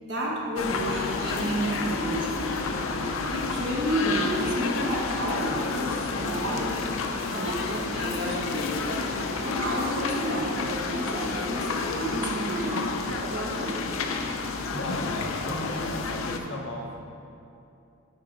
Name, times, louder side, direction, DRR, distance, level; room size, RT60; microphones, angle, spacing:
voice 1, 0.1-2.6 3.3-6.8 7.3-13.8, right 1 dB, 55° right, -2 dB, 1.1 m, -31 dB
sound 1, 0.6-16.4, left 3 dB, 80° left, 0.6 m, -30 dB
voice 2, 14.7-17.1, equal, 60° left, -1 dB, 1.0 m, -37 dB
8.3 x 3.8 x 6.1 m, 2.7 s
head